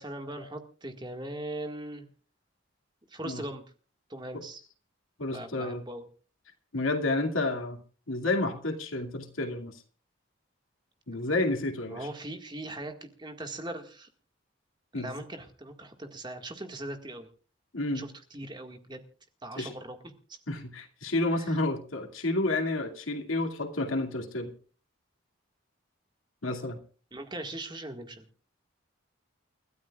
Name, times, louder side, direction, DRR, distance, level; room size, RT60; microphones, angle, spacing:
voice 1, 0.0-2.1 3.1-3.6 4.1-4.6 5.3-6.0 11.9-14.1 14.9-17.3 17.9-19.0 19.4-20.0 20.3-20.4 21.4-21.6 27.1-28.2, right 1 dB, 20° right, 5 dB, 1.8 m, -40 dB
voice 2, 5.2-5.8 6.7-7.8 8.1-9.8 11.1-12.1 14.9-15.2 17.7-18.1 19.5-19.7 20.5-24.5 26.4-26.8, left 2 dB, 90° left, 3 dB, 2.5 m, -30 dB
30.0 x 12.5 x 2.4 m, 0.37 s
head